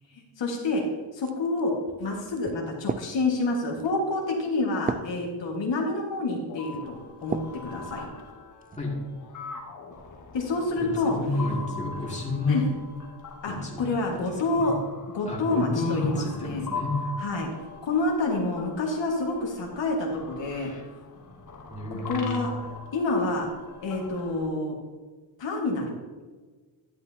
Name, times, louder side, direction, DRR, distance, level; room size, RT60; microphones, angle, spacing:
voice 1, 0.1-0.8 1.1-1.7 2.0-8.1 10.3-11.2 12.5-12.6 13.4-14.8 15.1-16.6 17.2-17.5 17.8-20.7 22.1-22.5 22.9-23.5 23.8-24.8 25.4-26.0, left 2 dB, 65° left, -1 dB, 1.8 m, -28 dB
sound 1, 1.1-7.6 8.2-8.8, right 4 dB, 20° right, 0.4 m, -37 dB
sound 2, 6.5-24.4, left 3 dB, 40° left, 1.6 m, -42 dB
voice 2, 10.8-12.6 13.5-13.9 14.3-14.8 15.2-17.0 21.7-22.5, left 2 dB, 15° left, -4 dB, 2.4 m, -30 dB
11.5 x 10.5 x 2.8 m, 1.4 s
cardioid pair, 115°, 46 cm